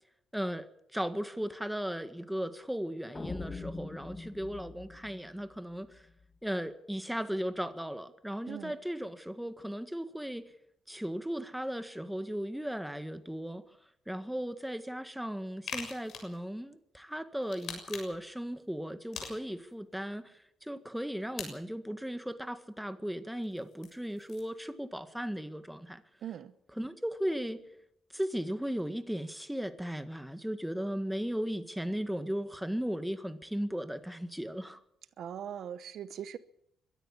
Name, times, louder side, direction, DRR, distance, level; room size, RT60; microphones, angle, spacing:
voice 1, 0.3-6.0 6.4-10.4 10.9-13.6 14.1-26.0 26.7-27.6 28.1-34.8, equal, 5° right, 1.7 m, -36 dB
sound 1, 3.1-6.2, left 3 dB, 25° left, 2.4 m, -43 dB
sound 2, 15.7-16.4 17.4-18.3 19.1-19.7 21.4-21.5 23.4-24.5, left 6 dB, 70° left, 6.9 m, -42 dB
voice 2, 26.2-26.5 35.2-36.4, right 9 dB, 70° right, 1.0 m, -40 dB
22.5 x 13.5 x 8.7 m
cardioid pair, 90°, 0 cm